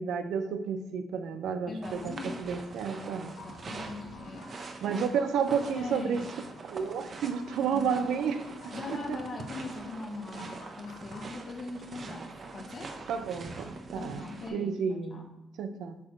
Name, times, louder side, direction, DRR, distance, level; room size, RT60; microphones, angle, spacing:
voice 1, 0.0-3.4 4.8-6.2 6.6-9.2 10.4-10.5 13.1-14.2 14.5-15.3 15.6-16.0, right 6 dB, 80° right, 9 dB, 0.6 m, -31 dB
voice 2, 1.7-2.5 3.4-4.8 5.7-6.3 7.6-7.9 8.7-13.0 14.0-15.2, left 3 dB, 45° left, 2 dB, 1.5 m, -41 dB
sound 1, 1.8-14.5, right 3 dB, 45° right, 0.9 m, -44 dB
sound 2, 3.4-11.4, left 2 dB, 85° left, 1.1 m, -52 dB
8.2 x 2.9 x 6.1 m, 0.99 s
cardioid pair, 90°, 0 cm